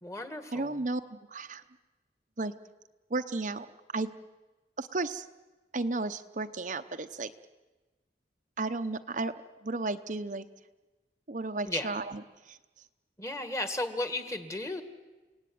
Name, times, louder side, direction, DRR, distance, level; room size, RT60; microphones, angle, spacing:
voice 1, 0.0-0.7 11.7-11.9 13.2-14.8, left 2 dB, 15° left, 8 dB, 1.8 m, -34 dB
voice 2, 0.5-1.6 2.4-2.5 3.1-3.7 3.9-4.1 4.8-5.3 5.7-7.3 8.6-9.3 9.6-10.5 11.3-12.6, right 3 dB, 45° right, 8 dB, 0.8 m, -33 dB
29.5 x 18.0 x 9.3 m, 1.2 s
head